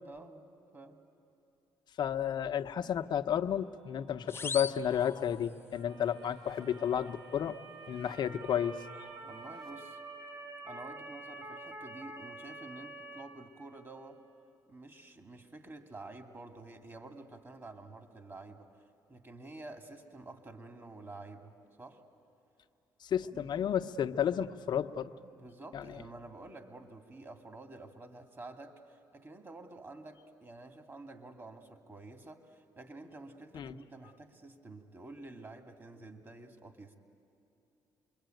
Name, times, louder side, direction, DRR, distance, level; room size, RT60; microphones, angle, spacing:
voice 1, 0.0-0.4 0.7-1.0 5.9-6.1 9.2-10.0 10.6-14.2 14.7-18.7 19.1-22.0 23.2-23.5 25.3-37.0, right 2 dB, 25° right, 5 dB, 2.7 m, -49 dB
voice 2, 2.0-7.6 7.9-8.8 23.0-25.1 25.7-26.0 33.5-33.7, left 9 dB, 60° left, 8 dB, 1.0 m, -32 dB
sound 1, 3.5-9.7, right 2 dB, 85° right, 5.2 m, -64 dB
sound 2, 4.3-5.8, left 4 dB, 30° left, 0.6 m, -41 dB
Motor vehicle (road) / Siren, 5.8-13.2, right 2 dB, 45° right, 6.3 m, -48 dB
27.5 x 22.5 x 9.3 m, 2.9 s
supercardioid pair, 70°, 9 cm